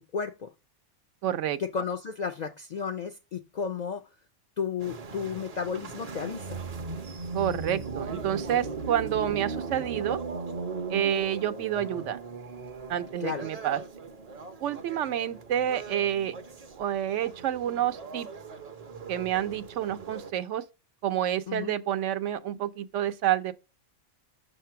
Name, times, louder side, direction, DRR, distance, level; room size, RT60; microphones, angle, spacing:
voice 1, 0.1-0.5 1.6-4.0 4.6-6.6 13.2-13.5 21.5-21.8, left 6 dB, 65° left, 0.4 m, -33 dB
voice 2, 1.2-1.6 7.3-10.2 10.9-12.2 12.9-13.8 14.6-16.3 16.8-18.3 19.1-20.6 21.0-23.5, right 11 dB, 85° right, 1.0 m, -29 dB
sound 1, 4.8-20.3, right 4 dB, 40° right, 0.6 m, -38 dB
6.6 x 2.9 x 5.6 m
omnidirectional pair, 1.2 m